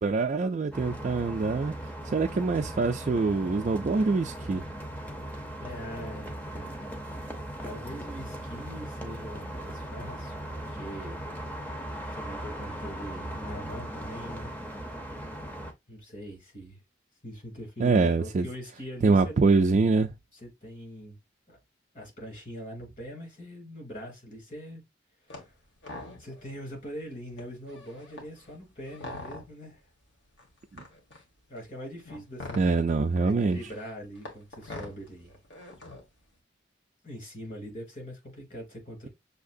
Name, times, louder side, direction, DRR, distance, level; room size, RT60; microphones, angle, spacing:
voice 1, 0.0-1.7 2.0-4.6 17.8-18.5 19.0-20.1 30.7-30.8 32.6-33.6, right 4 dB, 40° right, 0.3 m, -24 dB
sound 1, 0.7-15.7, right 1 dB, 10° left, 0.6 m, -38 dB
voice 2, 5.6-6.9 7.6-11.2 12.1-14.5 15.9-16.8 17.2-19.3 20.3-21.2 21.5-21.6 21.9-24.8 25.2-25.6 26.2-29.9 31.5-32.8 33.2-35.4 37.0-39.1, equal, 40° left, 2.7 m, -42 dB
sound 2, 25.3-25.5 25.8-26.5 26.9-27.0 27.3-29.7 30.4-36.2, left 2 dB, 70° left, 1.6 m, -44 dB
6.5 x 2.8 x 2.5 m
head